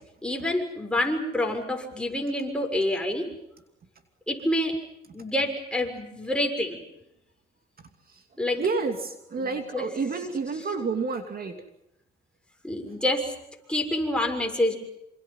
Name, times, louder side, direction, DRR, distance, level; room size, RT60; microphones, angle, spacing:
voice 1, 0.2-3.3 4.3-4.8 5.1-6.8 8.4-8.7 9.4-9.8 12.6-13.2 13.7-14.7, left 1 dB, 5° left, 2 dB, 6.7 m, -27 dB
voice 2, 8.5-11.6, right 4 dB, 50° right, 6 dB, 2.8 m, -29 dB
27.0 x 27.0 x 5.7 m, 0.81 s
cardioid pair, 90°, 20 cm